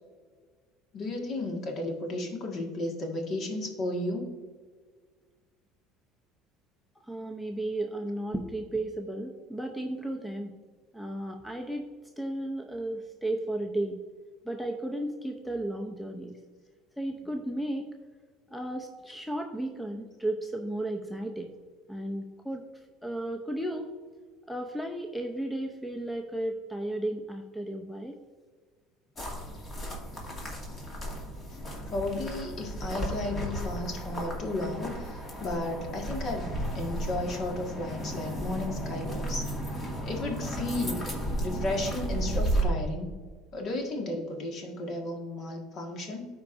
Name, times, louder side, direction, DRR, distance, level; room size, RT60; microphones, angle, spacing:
voice 1, 0.9-4.3 31.5-31.6 31.9-39.5 40.0-41.1 41.4-43.1 43.5-46.3, left 2 dB, 50° left, 1 dB, 1.8 m, -33 dB
voice 2, 7.0-10.5 10.9-11.9 12.2-14.0 14.4-16.4 17.0-17.9 18.5-21.5 21.9-22.6 23.0-23.9 24.5-28.2, right 1 dB, 5° left, 3 dB, 0.6 m, -34 dB
sound 1, 29.2-42.6, right 1 dB, 30° left, 2.3 m, -34 dB
13.0 x 4.7 x 2.6 m, 1.5 s
supercardioid pair, 110°, 0 cm